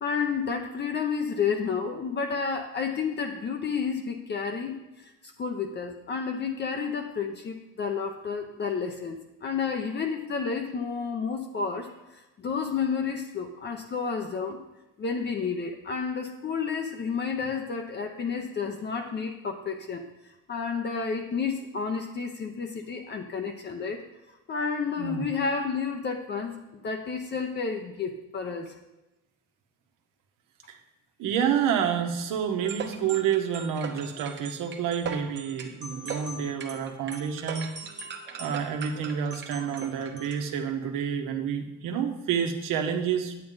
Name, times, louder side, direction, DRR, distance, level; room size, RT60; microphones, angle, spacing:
voice 1, 0.0-14.6 15.0-24.0 24.5-28.7, left 5 dB, 35° left, 4 dB, 0.7 m, -31 dB
voice 2, 31.2-37.7 38.0-38.1 38.4-43.4, right 8 dB, 85° right, 4 dB, 1.3 m, -29 dB
sound 1, 32.6-40.5, right 5 dB, 35° right, 1.0 m, -39 dB
9.2 x 8.8 x 4.0 m, 1.0 s
cardioid pair, 155°, 32 cm